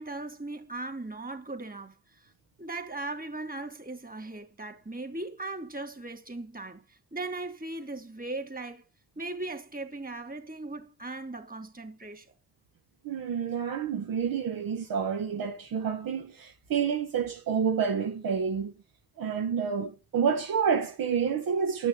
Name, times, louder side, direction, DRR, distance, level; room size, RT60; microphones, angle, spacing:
voice 1, 0.0-2.3 2.6-8.8 9.2-12.3, right 2 dB, 25° right, 3.5 m, -38 dB
voice 2, 13.0-18.7 19.2-21.9, right 6 dB, 65° right, 1.4 m, -29 dB
10.5 x 6.3 x 8.7 m
hypercardioid pair, 40°, 37 cm